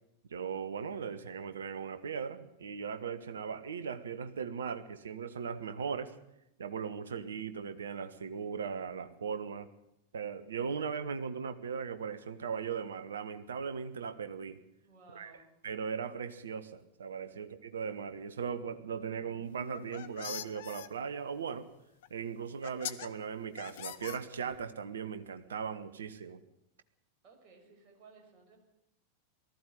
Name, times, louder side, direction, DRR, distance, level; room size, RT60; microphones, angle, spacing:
voice 1, 0.3-6.2 6.6-9.7 10.1-14.6 15.1-15.3 15.6-21.7 22.1-26.4, right 6 dB, 65° right, 11 dB, 1.4 m, -38 dB
voice 2, 14.8-15.5 17.2-17.3 27.2-28.6, right 4 dB, 35° right, 2 dB, 5.9 m, -58 dB
Motorcycle, 17.7-21.2, right 1 dB, 85° right, 0.9 m, -54 dB
sound 1, 19.6-20.9 22.0-22.1 22.6-23.1 23.6-24.6, left 12 dB, 55° left, 1.0 m, -42 dB
19.0 x 14.5 x 9.4 m, 0.85 s
figure-of-eight pair, 90°, 0 cm